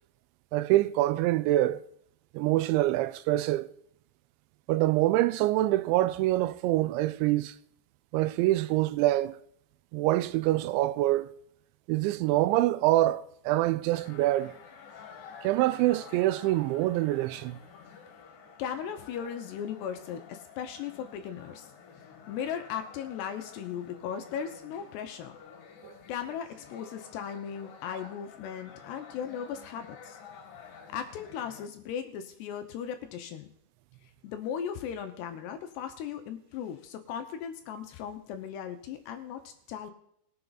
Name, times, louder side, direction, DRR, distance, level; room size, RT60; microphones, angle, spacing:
voice 1, 0.5-1.8 2.3-3.7 4.7-7.6 8.1-9.4 9.9-11.3 11.9-14.5 15.4-17.6 25.8-25.9, right 16 dB, 85° right, 2.9 m, -25 dB
sound 1, 13.9-31.7, left 7 dB, 60° left, 2.8 m, -50 dB
voice 2, 18.6-21.7 22.3-25.4 26.1-30.2 30.9-33.5 34.2-39.9, left 8 dB, 75° left, 2.7 m, -37 dB
20.5 x 6.9 x 3.9 m
omnidirectional pair, 5.2 m